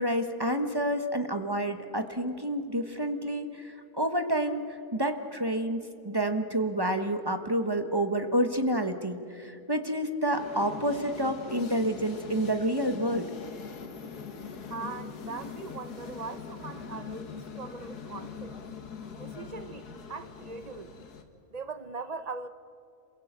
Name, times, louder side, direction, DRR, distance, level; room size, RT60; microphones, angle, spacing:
voice 1, 0.0-4.7 4.9-13.3, right 1 dB, 15° right, 7 dB, 1.1 m, -29 dB
sound 1, 10.3-21.2, left 5 dB, 75° left, 2.1 m, -42 dB
voice 2, 14.7-17.3 17.6-18.6 19.2-21.1 21.5-22.5, right 4 dB, 35° right, 11 dB, 0.7 m, -40 dB
27.5 x 22.0 x 8.1 m, 2.6 s
omnidirectional pair, 1.7 m